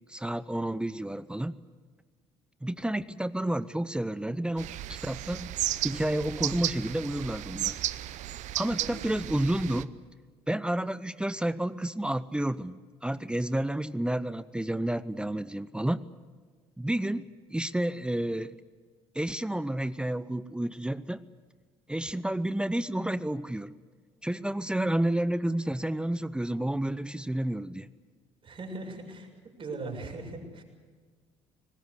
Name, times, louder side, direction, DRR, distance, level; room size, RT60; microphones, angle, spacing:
voice 1, 0.1-1.5 2.6-5.5 5.8-7.8 8.6-10.0 10.5-16.1 16.8-18.5 19.1-21.3 21.9-23.7 24.2-27.9, right 1 dB, 5° right, 16 dB, 0.8 m, -30 dB
sound 1, 4.6-9.8, right 14 dB, 60° right, 0.8 m, -34 dB
voice 2, 28.4-29.3 29.6-30.6, right 2 dB, 40° right, 1 dB, 7.0 m, -39 dB
24.5 x 20.0 x 8.3 m, 1.5 s
hypercardioid pair, 55°, 14 cm